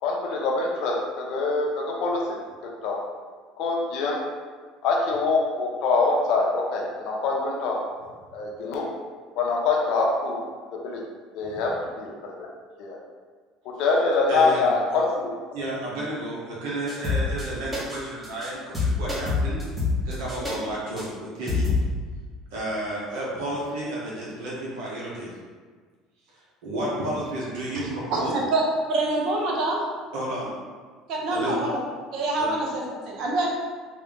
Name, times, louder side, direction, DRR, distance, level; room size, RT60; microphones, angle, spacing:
voice 1, 0.0-3.0 3.6-4.2 4.8-7.8 8.3-8.9 9.3-10.4 10.7-11.0 11.3-12.4 12.8-13.0 13.6-15.3, left 3 dB, 65° left, -2 dB, 0.7 m, -25 dB
voice 2, 14.3-14.6 15.5-19.6 20.0-21.7 22.5-25.3 26.6-28.3 30.1-30.5 31.3-31.7 32.4-32.5, right 1 dB, 80° right, -6 dB, 1.2 m, -32 dB
sound 1, 16.9-17.5 17.7-18.0 18.2-18.5 18.7-20.5 21.0-21.1 21.5-21.8, left 4 dB, 20° right, 1.3 m, -25 dB
voice 3, 28.1-28.6 28.9-29.8 31.1-31.8 32.1-33.5, right 2 dB, 65° right, -2 dB, 0.9 m, -25 dB
3.4 x 2.8 x 3.6 m, 1.5 s
supercardioid pair, 95°, 0 cm